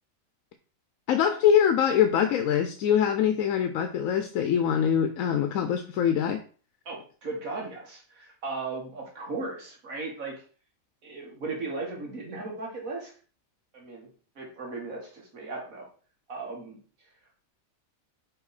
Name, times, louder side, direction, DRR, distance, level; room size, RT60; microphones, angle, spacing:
voice 1, 1.1-6.4, left 8 dB, 85° left, 8 dB, 1.0 m, -23 dB
voice 2, 6.9-10.3 11.0-13.1 13.7-14.1 14.4-15.9 16.3-16.8, right 3 dB, 80° right, -1 dB, 2.0 m, -36 dB
5.5 x 4.8 x 4.1 m, 0.40 s
omnidirectional pair, 1.4 m